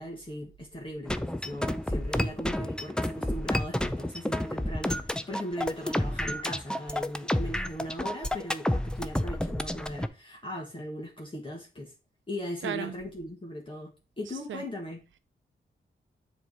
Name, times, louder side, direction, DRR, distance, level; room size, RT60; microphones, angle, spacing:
voice 1, 0.0-11.9 12.3-15.0, equal, 25° left, 1.4 m, -38 dB
sound 1, 1.1-10.1, left 1 dB, 5° left, 0.5 m, -30 dB
voice 2, 12.6-12.9 14.3-14.7, right 9 dB, 70° right, 0.4 m, -35 dB
7.3 x 3.2 x 5.5 m
cardioid pair, 75°, 21 cm